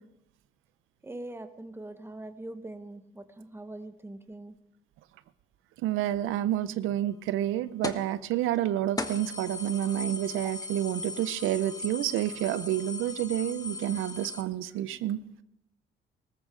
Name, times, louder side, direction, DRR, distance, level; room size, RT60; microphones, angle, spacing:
voice 1, 1.0-4.5, right 1 dB, 10° right, 9 dB, 1.2 m, -42 dB
voice 2, 5.8-15.2, right 12 dB, 90° right, 14 dB, 0.6 m, -29 dB
sound 1, 7.8-8.1 8.5-8.6 9.0-14.4, left 2 dB, 20° left, 1.2 m, -38 dB
19.0 x 14.0 x 3.8 m, 0.85 s
cardioid pair, 90°, 20 cm